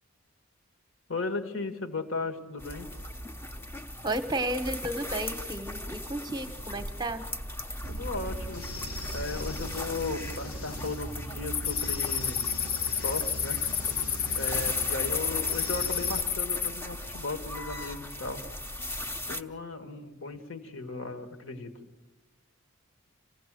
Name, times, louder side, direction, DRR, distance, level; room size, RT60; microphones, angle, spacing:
voice 1, 1.1-2.9 7.9-8.7 9.1-12.5 12.8-13.6 14.3-18.5 19.3-21.8, left 3 dB, 65° left, 5 dB, 2.0 m, -36 dB
sound 1, 2.6-19.4, left 1 dB, 10° left, 0.8 m, -38 dB
voice 2, 4.0-7.2, right 1 dB, 20° right, 9 dB, 1.0 m, -33 dB
sound 2, 7.8-16.2, equal, 85° left, 1.5 m, -40 dB
sound 3, 11.5-16.7, left 8 dB, 40° left, 0.7 m, -31 dB
27.5 x 16.5 x 7.7 m, 1.3 s
head